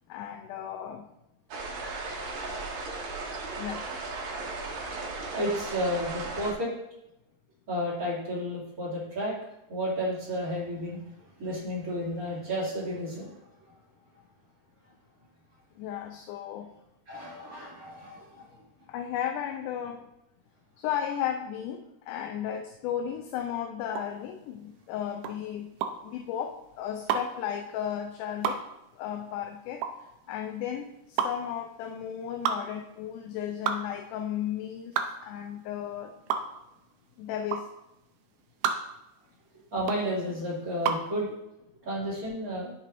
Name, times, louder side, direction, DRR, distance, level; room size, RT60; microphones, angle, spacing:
voice 1, 0.1-1.1 3.6-3.8 15.8-16.7 18.9-20.1 20.8-25.7 26.0-28.6 29.0-29.9 30.3-36.1 37.2-37.7, left 9 dB, 80° left, 4 dB, 2.1 m, -34 dB
sound 1, 1.5-6.5, right 3 dB, 70° right, 2.4 m, -36 dB
voice 2, 5.3-6.7 7.7-9.3 9.7-11.0 11.4-13.3 17.1-18.6 39.7-41.3 41.8-42.7, equal, 30° right, -6 dB, 2.5 m, -32 dB
sound 2, 23.9-41.1, right 7 dB, 85° right, 2.3 m, -33 dB
10.5 x 6.5 x 2.6 m, 0.88 s
omnidirectional pair, 3.8 m